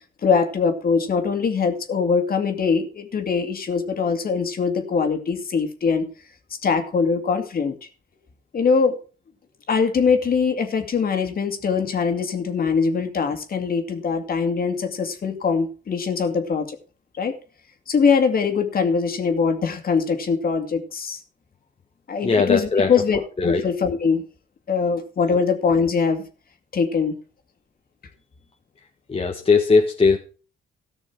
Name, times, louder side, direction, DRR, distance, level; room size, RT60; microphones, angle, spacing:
voice 1, 0.2-6.1 6.6-7.7 8.5-8.9 9.7-16.8 17.2-17.4 17.9-21.2 22.1-24.2 24.7-26.2 26.7-27.2, left 5 dB, 50° left, 6 dB, 2.4 m, -22 dB
voice 2, 22.2-22.9 23.4-23.6 29.1-30.2, left 4 dB, 30° left, 3 dB, 1.5 m, -19 dB
14.5 x 6.2 x 6.1 m, 0.37 s
cardioid pair, 90°, 20 cm